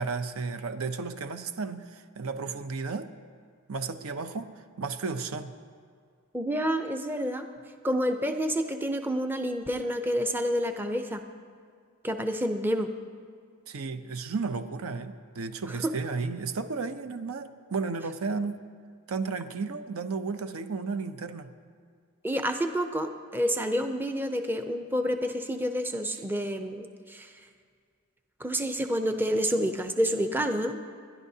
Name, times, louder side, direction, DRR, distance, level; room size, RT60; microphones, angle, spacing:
voice 1, 0.0-3.1 3.7-5.5 13.7-18.6 19.1-21.5, right 4 dB, 75° right, 9 dB, 0.6 m, -33 dB
voice 2, 6.3-7.5 7.8-11.2 12.0-12.9 15.7-15.9 22.2-27.4 28.4-30.8, equal, 10° right, 6 dB, 0.5 m, -29 dB
29.5 x 11.0 x 2.8 m, 2.1 s
head